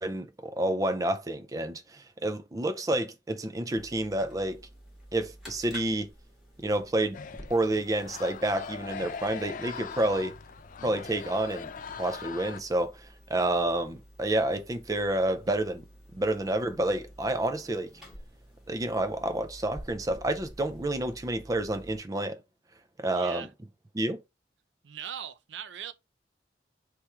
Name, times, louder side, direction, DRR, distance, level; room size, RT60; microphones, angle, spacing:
voice 1, 0.0-4.6 5.1-6.1 6.6-7.2 7.5-10.3 10.8-11.7 12.0-13.0 13.3-15.8 16.1-17.9 18.7-22.4 23.0-23.5 23.9-24.2, right 1 dB, 20° right, 0.4 m, -29 dB
sound 1, 3.8-22.0, equal, ahead, 1.7 m, -51 dB
sound 2, 7.1-12.6, left 6 dB, 45° left, 0.3 m, -41 dB
voice 2, 23.1-23.5 24.8-25.9, right 9 dB, 80° right, 0.5 m, -39 dB
3.5 x 3.0 x 4.3 m
head